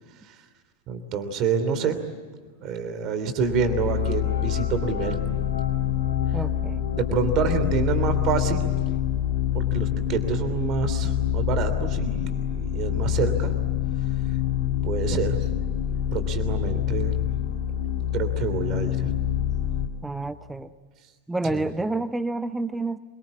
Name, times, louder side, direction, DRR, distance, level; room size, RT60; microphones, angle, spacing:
voice 1, 0.9-2.0 2.6-5.2 6.9-8.7 9.5-13.5 14.8-15.4 16.1-17.2 18.1-19.1 21.5-21.6, right 5 dB, 35° right, 9 dB, 3.0 m, -27 dB
sound 1, 3.4-19.9, left 10 dB, 55° left, 2.4 m, -26 dB
voice 2, 6.3-6.8 20.0-20.7 21.3-23.0, right 2 dB, 5° right, 14 dB, 0.7 m, -29 dB
26.5 x 24.5 x 8.5 m, 1.5 s
figure-of-eight pair, 90°, 0 cm